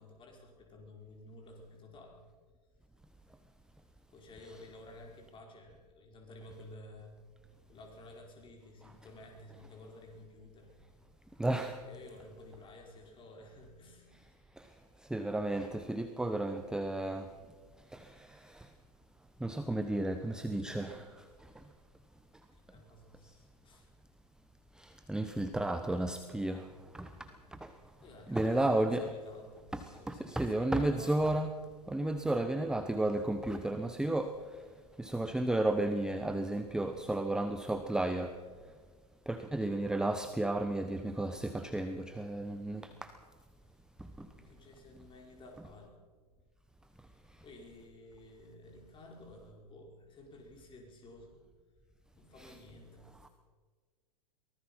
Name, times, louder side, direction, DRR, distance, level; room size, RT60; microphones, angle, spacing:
voice 1, 0.0-2.2 4.1-7.2 7.7-10.7 11.8-14.1 22.5-23.9 27.3-27.5 28.0-31.2 42.3-42.9 44.2-46.0 47.4-51.4 52.1-53.1, left 2 dB, 25° left, 1 dB, 5.4 m, -53 dB
voice 2, 11.4-11.8 14.6-14.7 15.1-17.3 17.9-18.7 19.4-21.2 24.8-26.7 26.9-27.1 27.5-27.7 28.3-29.1 29.7-31.5 31.9-34.6 35.0-38.4 39.3-43.1 44.0-44.3 52.4-52.6 53.2-53.3, right 1 dB, 5° right, 8 dB, 1.0 m, -33 dB
23.5 x 19.0 x 5.7 m, 1.5 s
hypercardioid pair, 105°, 21 cm